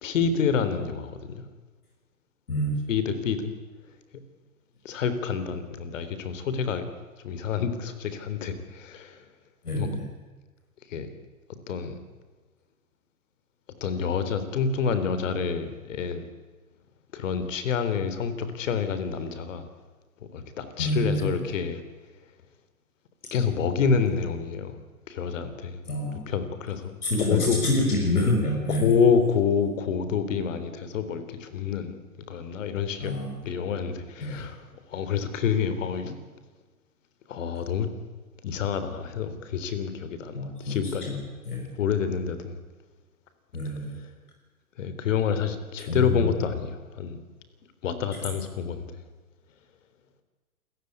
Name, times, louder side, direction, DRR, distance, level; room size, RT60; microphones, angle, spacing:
voice 1, 0.0-1.4 2.9-3.5 4.8-6.9 7.2-9.2 9.7-9.9 10.9-11.1 11.7-12.0 13.8-16.2 17.1-19.7 20.3-21.8 23.3-24.8 25.1-25.8 26.3-27.6 28.7-32.0 32.3-33.1 33.4-36.2 37.3-37.9 38.4-41.1 41.8-42.6 44.8-47.2 47.8-48.9, left 6 dB, 55° left, 10 dB, 3.8 m, -28 dB
voice 2, 2.5-2.8 9.6-10.1 20.8-21.5 25.9-26.3 27.0-28.9 33.0-33.4 34.2-34.4 40.3-40.8 41.1-41.7 43.5-44.0 45.9-46.3, left 1 dB, 80° left, 0 dB, 6.0 m, -27 dB
28.5 x 15.5 x 9.7 m, 1.3 s
hypercardioid pair, 120°, 44 cm